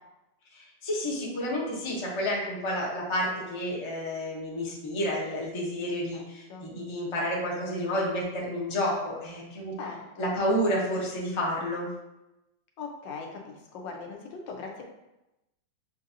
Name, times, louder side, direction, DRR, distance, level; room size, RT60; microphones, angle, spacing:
voice 1, 0.5-9.7 10.2-11.9, equal, 30° left, -4 dB, 0.5 m, -30 dB
voice 2, 6.1-6.7 9.8-10.4 12.8-14.8, left 4 dB, 85° left, 1 dB, 1.4 m, -40 dB
6.5 x 2.6 x 2.7 m, 0.96 s
omnidirectional pair, 2.0 m